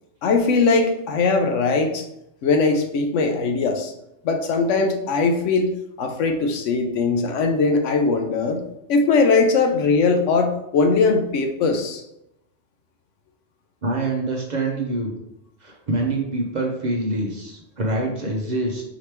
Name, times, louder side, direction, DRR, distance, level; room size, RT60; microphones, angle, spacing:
voice 1, 0.2-2.0 2.4-3.9 4.2-5.7 6.0-8.6 8.9-12.0, left 4 dB, 85° left, 5 dB, 1.0 m, -20 dB
voice 2, 13.8-15.1 15.6-18.8, right 2 dB, 45° right, 0 dB, 0.7 m, -25 dB
4.9 x 3.0 x 3.3 m, 0.83 s
omnidirectional pair, 1.2 m